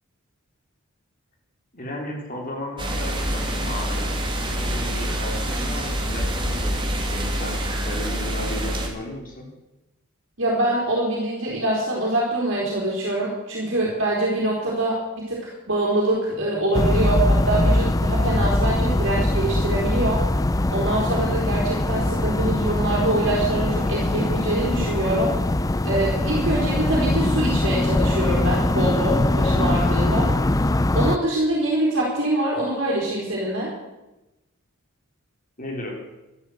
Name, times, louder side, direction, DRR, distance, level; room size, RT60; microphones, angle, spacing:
voice 1, 1.7-9.5 35.6-35.9, left 1 dB, 40° left, 0 dB, 3.9 m, -35 dB
sound 1, 2.8-8.9, equal, 20° right, 2.2 m, -26 dB
voice 2, 10.4-20.2 20.7-25.4 25.8-30.3 31.0-33.7, right 1 dB, 55° right, -5 dB, 4.1 m, -24 dB
sound 2, 16.7-31.2, left 1 dB, 15° left, 0.4 m, -22 dB
12.5 x 12.5 x 8.0 m, 1.0 s
head